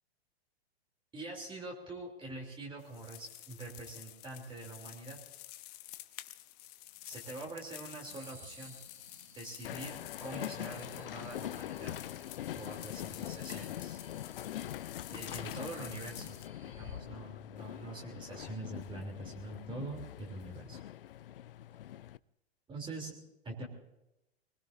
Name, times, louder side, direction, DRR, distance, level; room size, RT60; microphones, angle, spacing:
voice 1, 1.1-5.2 7.0-8.8 9.3-12.0 12.6-14.0 15.1-16.4 16.6-20.8 22.7-23.1 23.4-23.7, right 2 dB, 15° right, -1 dB, 3.2 m, -44 dB
sound 1, 2.8-16.5, left 16 dB, 35° left, 0.9 m, -50 dB
sound 2, 8.0-17.0, right 2 dB, 85° right, 3.6 m, -59 dB
Train, 9.6-22.2, left 12 dB, 60° left, 0.5 m, -43 dB
24.5 x 20.0 x 2.6 m, 0.90 s
figure-of-eight pair, 105°, 32 cm